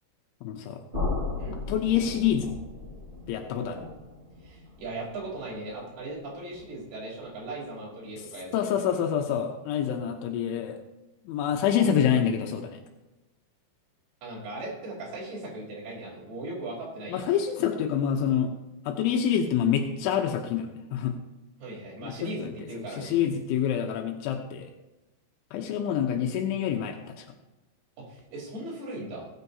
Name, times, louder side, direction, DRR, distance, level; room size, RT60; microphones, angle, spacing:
voice 1, 0.4-0.8 1.7-2.5 3.3-3.8 8.5-10.8 11.3-12.8 17.1-18.5 18.9-21.2 22.0-22.5 23.0-24.7 25.5-27.3, left 9 dB, 85° left, 3 dB, 3.2 m, -27 dB
sound 1, 0.9-6.8, left 3 dB, 10° right, 4.7 m, -36 dB
voice 2, 4.4-8.8 14.2-17.2 21.6-23.1 28.1-29.3, right 2 dB, 55° right, -5 dB, 6.0 m, -38 dB
20.0 x 9.2 x 2.7 m, 1.1 s
omnidirectional pair, 5.4 m